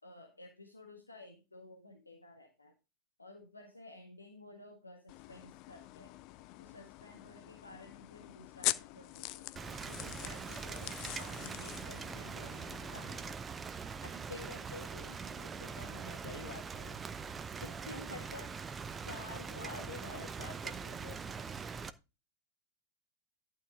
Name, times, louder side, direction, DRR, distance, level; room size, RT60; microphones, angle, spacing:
voice 1, 0.0-2.7 3.2-6.2 6.6-9.5 9.9-13.2 13.8-16.5 17.6-18.5 19.0-20.3, left 2 dB, 80° left, 3 dB, 1.5 m, -52 dB
sound 1, 5.1-13.3, left 18 dB, 40° left, 0.5 m, -43 dB
Rain, 9.6-21.9, right 5 dB, 20° right, 0.7 m, -43 dB
voice 2, 16.2-17.0 19.5-21.3, left 5 dB, 65° left, 6 dB, 2.3 m, -49 dB
11.5 x 5.7 x 3.8 m, 0.28 s
figure-of-eight pair, 90°, 0 cm